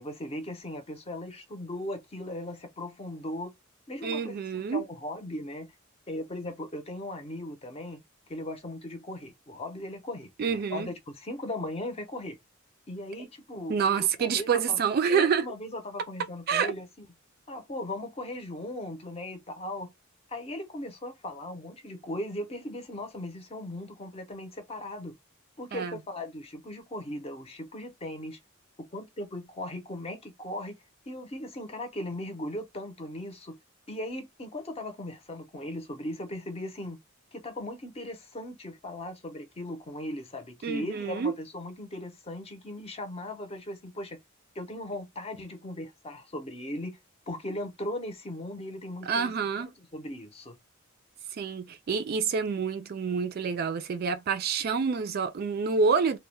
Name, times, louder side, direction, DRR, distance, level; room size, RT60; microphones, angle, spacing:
voice 1, 0.0-3.5 3.9-5.7 6.1-8.0 8.3-12.4 12.9-14.8 15.1-17.1 17.5-19.9 20.3-25.2 25.6-28.4 28.9-30.8 31.1-33.6 33.9-37.0 37.3-44.2 44.5-47.0 47.3-49.3 49.9-50.6, left 1 dB, 30° left, 0.6 m, -38 dB
voice 2, 4.0-4.8 10.4-10.9 13.7-15.5 16.5-16.7 25.7-26.0 40.6-41.3 49.0-49.7 51.4-56.2, right 6 dB, 45° right, 0.3 m, -27 dB
2.2 x 2.1 x 3.1 m
head